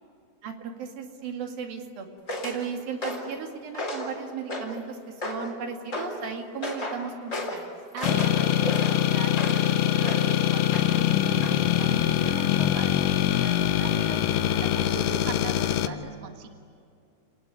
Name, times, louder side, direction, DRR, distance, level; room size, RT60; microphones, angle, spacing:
voice 1, 0.4-2.1 2.4-7.7 15.2-15.4, right 6 dB, 75° right, 3 dB, 4.1 m, -36 dB
sound 1, 2.3-2.6 3.0-3.3 3.7-4.1 4.5-4.8 5.2-5.5 5.9-6.2 6.6-7.0 7.3-7.6 8.0-9.7 10.0-10.3 10.7-11.1 11.4-11.6, left 1 dB, 20° left, 3.8 m, -33 dB
voice 2, 7.9-14.2 14.6-16.5, right 6 dB, 50° right, 4 dB, 2.2 m, -39 dB
sound 2, 8.0-15.9, left 12 dB, 70° left, 2.3 m, -23 dB
29.5 x 19.5 x 9.4 m, 2.4 s
omnidirectional pair, 4.3 m